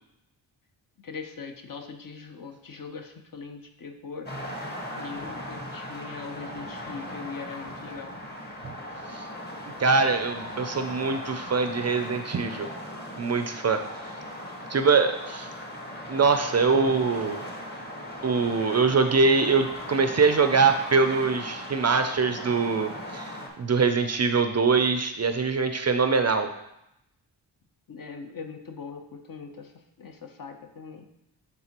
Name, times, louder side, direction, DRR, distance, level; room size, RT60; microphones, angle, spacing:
voice 1, 1.0-4.4 4.9-8.2 27.9-29.7 30.0-31.0, left 5 dB, 50° left, 4 dB, 0.7 m, -40 dB
sound 1, 4.3-23.5, left 1 dB, 25° left, 1.0 m, -38 dB
voice 2, 9.8-12.7 13.2-13.8 14.7-15.5 16.1-17.4 18.2-26.5, right 4 dB, 40° right, 8 dB, 0.4 m, -23 dB
10.5 x 3.6 x 2.9 m, 0.84 s
wide cardioid pair, 110°, 43 cm